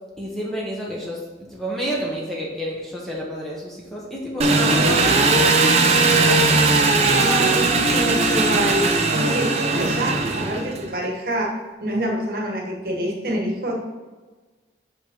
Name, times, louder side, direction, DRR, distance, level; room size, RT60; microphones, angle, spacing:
voice 1, 0.2-5.0 5.3-6.6, equal, ahead, -4 dB, 0.9 m, -30 dB
Engine, 4.4-10.9, right 3 dB, 35° right, 0.6 m, -18 dB
voice 2, 7.1-11.5 11.8-13.7, right 1 dB, 55° right, -1 dB, 1.3 m, -26 dB
5.7 x 5.3 x 3.7 m, 1.3 s
head